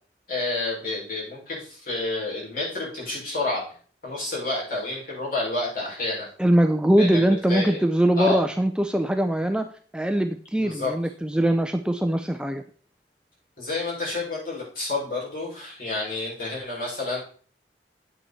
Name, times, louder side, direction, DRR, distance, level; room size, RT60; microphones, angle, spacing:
voice 1, 0.3-3.6 4.0-6.3 7.0-7.8 8.2-8.4 10.6-10.9 13.6-17.2, left 2 dB, 50° left, -5 dB, 5.8 m, -29 dB
voice 2, 6.4-9.7 9.9-12.6, right 1 dB, 5° right, 7 dB, 0.4 m, -22 dB
8.5 x 8.3 x 4.2 m, 0.43 s
head